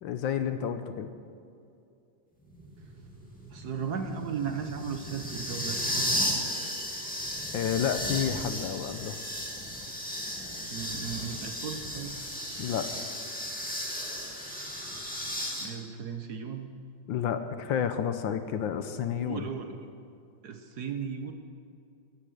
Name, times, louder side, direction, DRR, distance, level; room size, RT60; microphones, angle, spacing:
voice 1, 0.0-1.1 7.5-9.2 12.6-12.9 17.1-19.5, left 8 dB, 70° left, 9 dB, 1.4 m, -30 dB
sound 1, 2.5-15.6, equal, 5° left, 2.1 m, -35 dB
voice 2, 3.5-6.7 10.7-12.2 15.6-16.7 19.2-19.9 20.4-21.3, right 6 dB, 60° right, 6 dB, 1.2 m, -36 dB
15.0 x 12.0 x 6.4 m, 2.5 s
omnidirectional pair, 2.3 m